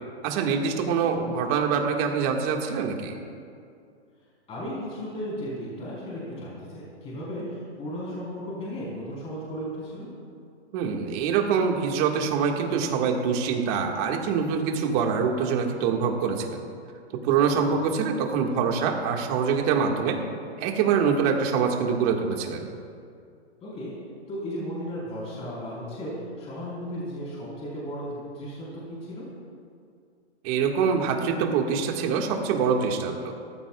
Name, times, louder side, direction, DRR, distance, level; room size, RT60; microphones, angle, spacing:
voice 1, 0.2-3.1 10.7-16.6 17.2-20.2 20.6-22.7 30.4-33.3, right 6 dB, 35° right, 2 dB, 1.9 m, -25 dB
voice 2, 4.5-10.1 17.7-17.8 23.6-23.9 24.3-29.2, equal, 20° left, -7 dB, 4.3 m, -35 dB
27.0 x 15.0 x 2.4 m, 2.3 s
hypercardioid pair, 140°, 34 cm